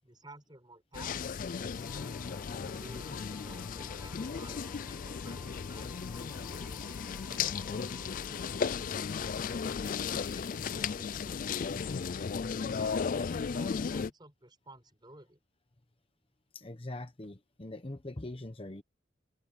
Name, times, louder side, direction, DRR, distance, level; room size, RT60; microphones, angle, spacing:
voice 1, 0.0-1.9 2.6-8.8 9.5-12.3 12.7-15.4, right 2 dB, 20° right, 6.4 m, -54 dB
sound 1, 0.9-14.1, left 6 dB, 45° left, 0.3 m, -35 dB
sound 2, 1.8-9.8, right 1 dB, 5° right, 7.1 m, -55 dB
sound 3, 5.5-12.1, left 6 dB, 70° left, 7.3 m, -56 dB
voice 2, 16.5-18.8, left 2 dB, 30° left, 0.9 m, -42 dB
head